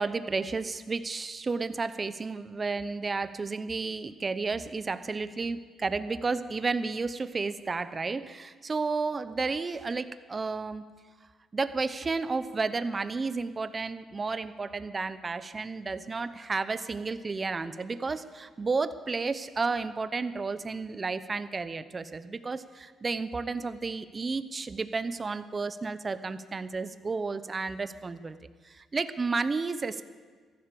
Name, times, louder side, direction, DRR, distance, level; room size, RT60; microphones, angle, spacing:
voice 1, 0.0-10.8 11.5-28.4 28.6-30.0, right 4 dB, 30° right, 13 dB, 0.7 m, -32 dB
14.5 x 11.5 x 6.8 m, 1.5 s
cardioid pair, 90°, 0 cm